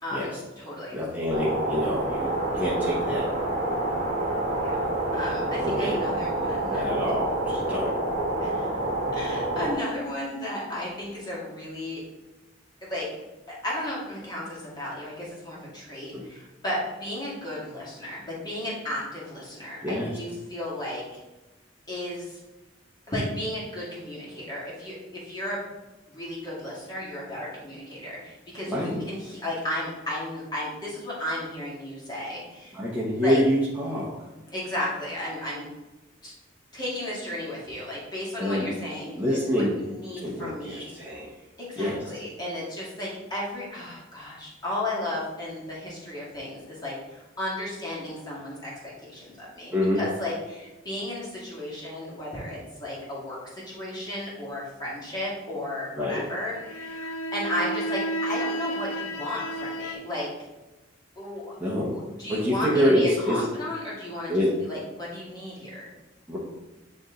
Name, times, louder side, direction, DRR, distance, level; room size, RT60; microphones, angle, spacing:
voice 1, 0.0-1.0 4.6-4.8 5.1-6.8 8.4-8.7 9.1-12.0 12.8-13.1 13.6-21.0 21.9-22.4 23.1-25.6 26.1-32.8 33.2-33.4 34.5-35.7 36.2-36.3 36.7-40.9 41.6-53.4 53.7-60.3 61.2-61.6 61.9-64.4 64.7-65.9, left 1 dB, 20° left, -6 dB, 2.1 m, -34 dB
voice 2, 0.9-2.3 2.5-3.3 5.6-6.1 6.7-7.9 16.1-16.2 19.8-20.2 28.7-29.0 32.7-34.3 38.4-38.7 39.1-39.8 40.2-41.3 41.8-42.0 49.7-50.0 56.0-56.2 61.6-62.0 62.3-63.4 64.3-64.5 66.3-66.4, equal, 10° right, -7 dB, 1.0 m, -26 dB
sound 1, 1.3-9.7, right 1 dB, 35° right, 1.5 m, -28 dB
sound 2, 56.4-59.9, right 1 dB, 80° left, 0.6 m, -32 dB
9.4 x 3.2 x 3.8 m, 1.1 s
head